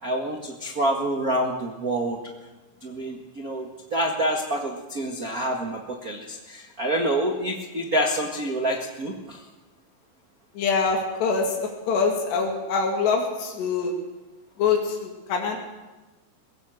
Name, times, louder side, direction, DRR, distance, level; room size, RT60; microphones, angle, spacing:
voice 1, 0.0-2.2 2.8-9.4, right 1 dB, 60° right, 2 dB, 0.8 m, -27 dB
voice 2, 10.6-13.9 14.6-15.6, left 5 dB, 85° left, 1 dB, 4.5 m, -24 dB
22.0 x 16.5 x 7.9 m, 1.2 s
omnidirectional pair, 4.7 m